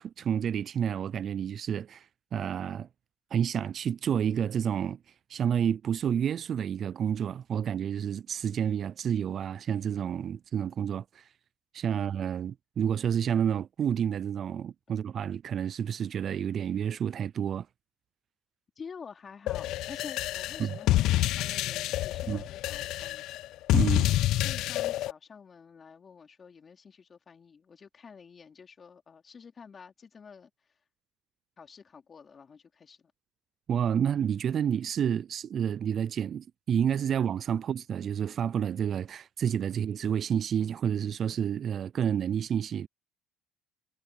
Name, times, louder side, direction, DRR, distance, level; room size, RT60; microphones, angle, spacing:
voice 1, 0.0-2.1 2.3-2.9 3.3-5.0 5.3-11.3 11.7-17.7 20.6-20.8 22.3-22.4 23.7-24.1 33.7-42.9, right 8 dB, 40° right, 0.3 m, -29 dB
voice 2, 18.8-23.3 23.9-24.1 24.4-30.5 31.6-33.1, left 6 dB, 30° left, 3.7 m, -49 dB
sound 1, 19.5-25.1, left 15 dB, 60° left, 0.4 m, -28 dB
supercardioid pair, 110°, 0 cm